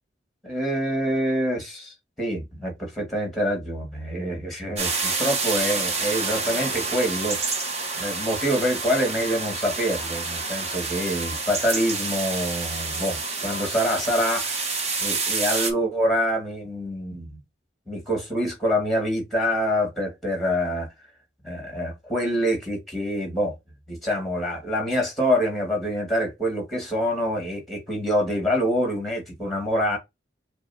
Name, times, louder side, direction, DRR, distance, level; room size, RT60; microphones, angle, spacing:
voice 1, 0.4-7.6 8.0-14.7 15.0-17.4 17.9-20.9 21.4-23.5 23.9-30.0, equal, ahead, 2.1 m, -26 dB
sound 1, 4.8-15.7, right 4 dB, 35° right, 1.0 m, -28 dB
6.8 x 2.3 x 2.7 m
head